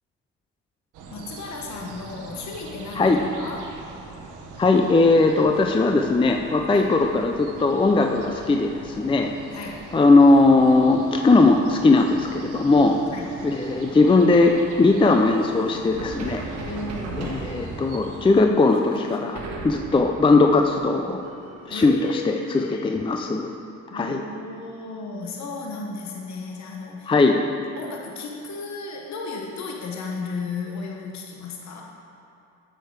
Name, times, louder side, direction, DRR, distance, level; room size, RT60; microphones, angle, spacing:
sound 1, 0.9-18.4, right 4 dB, 90° right, 0.9 m, -42 dB
voice 1, 1.1-3.7 6.6-6.9 9.5-9.8 12.7-13.3 16.5-17.5 19.9-20.1 21.7-23.0 23.9-27.4 27.8-31.8, left 4 dB, 65° left, 0 dB, 1.1 m, -35 dB
voice 2, 4.6-9.3 9.9-12.9 13.4-16.4 17.2-21.2 21.7-23.5 23.9-24.2 27.1-27.4, left 3 dB, 15° left, 3 dB, 0.4 m, -19 dB
sound 2, 15.9-21.9, right 3 dB, 60° right, 1.2 m, -38 dB
7.8 x 6.7 x 4.7 m, 2.6 s
cardioid pair, 90°, 30 cm